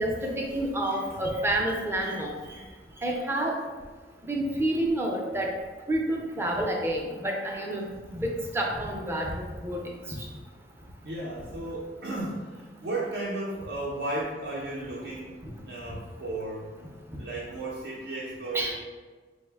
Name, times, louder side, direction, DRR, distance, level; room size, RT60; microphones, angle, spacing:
voice 1, 0.0-2.3 3.0-3.5 4.3-5.5 5.9-9.3 9.6-9.8 18.5-18.7, right 1 dB, 15° right, -1 dB, 0.4 m, -28 dB
voice 2, 11.0-15.4 15.6-18.7, right 2 dB, 70° right, -5 dB, 0.5 m, -34 dB
4.8 x 2.1 x 3.3 m, 1.4 s
head